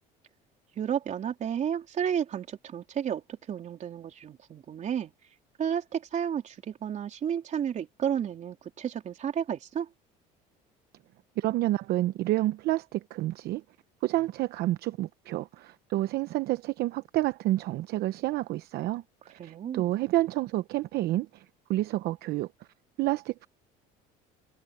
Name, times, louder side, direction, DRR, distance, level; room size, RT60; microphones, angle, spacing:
voice 1, 0.8-5.1 5.6-9.9 19.4-19.9, right 8 dB, 45° right, 3.9 m, -32 dB
voice 2, 11.4-13.6 14.0-21.4 21.7-22.5 23.0-23.5, right 16 dB, 65° right, 0.9 m, -29 dB
supercardioid pair, 105°, 18 cm